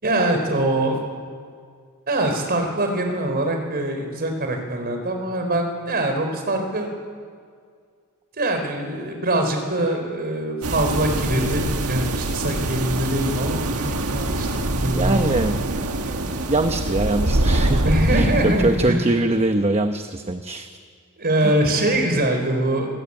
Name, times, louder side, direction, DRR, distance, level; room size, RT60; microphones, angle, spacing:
voice 1, 0.0-1.0 2.1-6.9 8.4-15.2 17.8-19.1 21.2-22.9, right 1 dB, 45° right, 4 dB, 4.3 m, -23 dB
sound 1, 10.6-18.9, right 2 dB, 80° right, 1.6 m, -24 dB
voice 2, 14.8-15.6 16.2-20.7 21.4-21.5, right 2 dB, 30° right, 7 dB, 0.9 m, -23 dB
25.5 x 18.0 x 8.8 m, 2.1 s
head